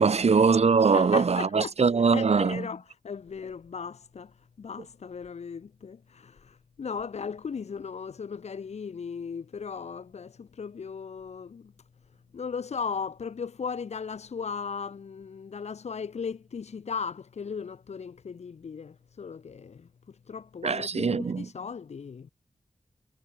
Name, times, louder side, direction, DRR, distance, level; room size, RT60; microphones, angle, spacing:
voice 1, 0.0-2.7 20.6-21.5, right 5 dB, 65° right, 1.1 m, -22 dB
voice 2, 0.9-1.7 2.1-4.3 4.6-11.7 12.3-19.9 20.3-22.3, left 6 dB, 70° left, 0.7 m, -37 dB
cardioid pair, 40°, 12 cm